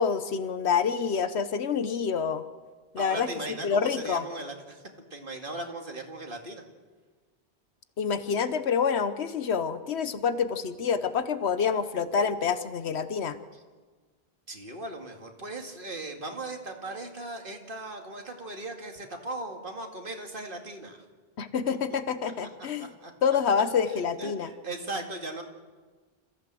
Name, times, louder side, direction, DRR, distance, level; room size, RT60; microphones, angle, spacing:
voice 1, 0.0-2.4 2.9-3.3 3.6-4.3 8.0-13.4 21.4-22.9 23.2-24.5, left 6 dB, 85° left, 12 dB, 1.2 m, -27 dB
voice 2, 3.0-4.8 5.1-6.6 13.5-13.6 14.5-21.0 22.8-23.1 23.9-25.4, right 2 dB, 55° right, 3 dB, 2.4 m, -38 dB
26.5 x 15.0 x 7.6 m, 1.4 s
omnidirectional pair, 1.1 m